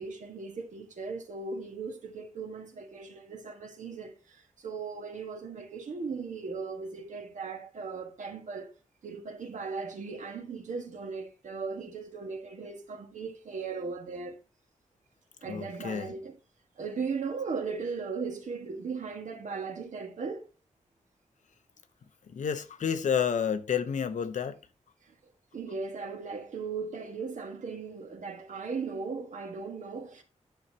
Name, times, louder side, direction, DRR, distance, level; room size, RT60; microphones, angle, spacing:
voice 1, 0.0-8.7 9.0-14.4 15.4-16.3 16.8-20.5 25.1-25.2 25.5-30.2, right 4 dB, 75° right, 1.6 m, -37 dB
voice 2, 15.5-16.1 22.3-24.6, left 7 dB, 75° left, 0.8 m, -30 dB
10.5 x 6.4 x 2.8 m
wide cardioid pair, 130°, 13 cm